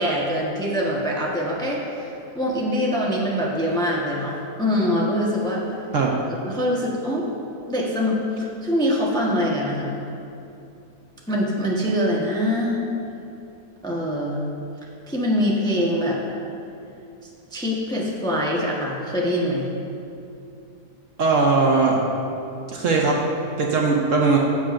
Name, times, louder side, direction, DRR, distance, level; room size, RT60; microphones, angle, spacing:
voice 1, 0.0-5.6 6.4-7.3 7.7-9.9 11.3-12.8 13.8-14.5 15.1-16.2 17.5-19.7, equal, 5° left, -4 dB, 0.9 m, -24 dB
voice 2, 21.2-22.0 22.7-23.2 23.6-24.4, right 4 dB, 60° right, -1 dB, 1.1 m, -19 dB
14.5 x 7.6 x 2.5 m, 2.7 s
omnidirectional pair, 1.7 m